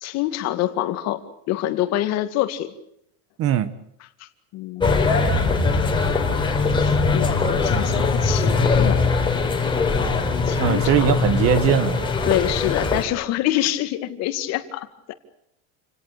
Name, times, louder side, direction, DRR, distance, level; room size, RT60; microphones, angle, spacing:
voice 1, 0.0-2.7 4.2-5.9 6.6-9.1 10.5-11.2 12.2-15.1, left 14 dB, 50° left, 10 dB, 2.2 m, -26 dB
voice 2, 3.4-3.7 10.6-12.0, right 10 dB, 40° right, 14 dB, 1.7 m, -20 dB
sound 1, 4.8-13.0, left 4 dB, 15° left, 3.9 m, -21 dB
28.5 x 18.0 x 8.6 m, 0.75 s
supercardioid pair, 150°, 34 cm